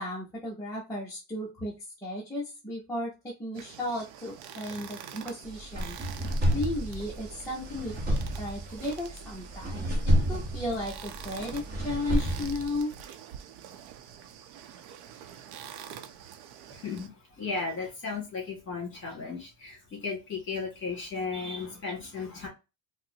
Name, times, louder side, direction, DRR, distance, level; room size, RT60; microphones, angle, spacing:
voice 1, 0.0-1.7 2.0-6.0 6.5-12.9, left 1 dB, 5° left, -5 dB, 0.5 m, -35 dB
sound 1, 3.5-17.1, right 9 dB, 85° right, 0.7 m, -46 dB
sound 2, 5.4-12.8, equal, 20° right, 0.8 m, -30 dB
voice 2, 16.7-22.5, left 4 dB, 25° left, 0 dB, 1.8 m, -35 dB
4.2 x 2.1 x 2.7 m, 0.27 s
cardioid pair, 160°, 47 cm